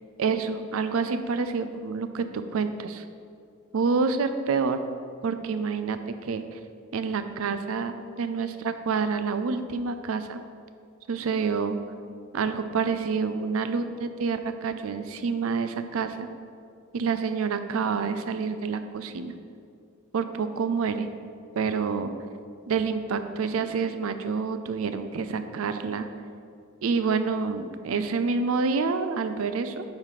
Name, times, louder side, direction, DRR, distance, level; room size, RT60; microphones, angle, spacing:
voice 1, 0.2-3.0 3.7-4.8 5.2-6.0 6.3-6.6 6.9-10.4 11.1-11.8 12.3-16.3 16.9-19.3 20.1-21.1 21.6-22.1 22.7-26.1 26.8-29.8, right 5 dB, 75° right, 9 dB, 0.4 m, -28 dB
8.5 x 3.1 x 5.8 m, 2.3 s
head